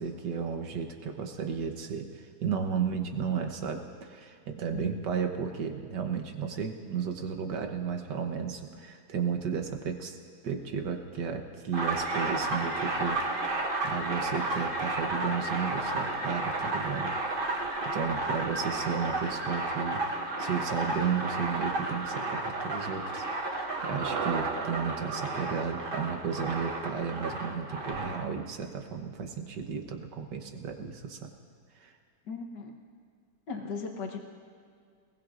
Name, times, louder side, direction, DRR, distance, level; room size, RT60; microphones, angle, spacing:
voice 1, 0.0-10.2 10.4-17.1 17.9-20.0 20.4-23.3 23.8-31.3 31.8-31.9, right 6 dB, 80° right, 4 dB, 1.7 m, -33 dB
sound 1, 11.7-28.2, right 2 dB, 35° right, 1.1 m, -32 dB
sound 2, 23.8-28.1 28.3-28.4, right 6 dB, 65° right, 0.6 m, -39 dB
voice 2, 32.3-32.7 33.5-34.2, left 4 dB, 85° left, 1 dB, 1.8 m, -37 dB
21.5 x 19.0 x 2.5 m, 2.2 s
omnidirectional pair, 1.8 m